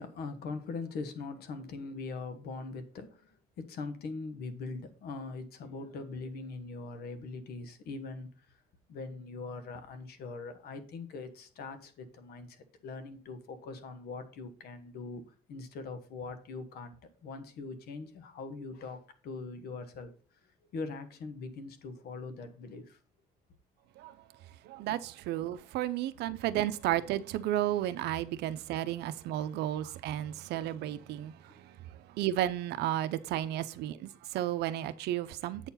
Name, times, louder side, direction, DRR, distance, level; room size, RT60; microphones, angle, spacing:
voice 1, 0.0-3.3 3.6-8.3 8.9-15.2 15.5-16.9 17.2-20.1 20.7-23.0, left 3 dB, 70° left, 1.4 m, -41 dB
voice 2, 24.6-35.7, right 13 dB, 80° right, 0.6 m, -33 dB
7.9 x 4.5 x 5.6 m
cardioid pair, 110°, 17 cm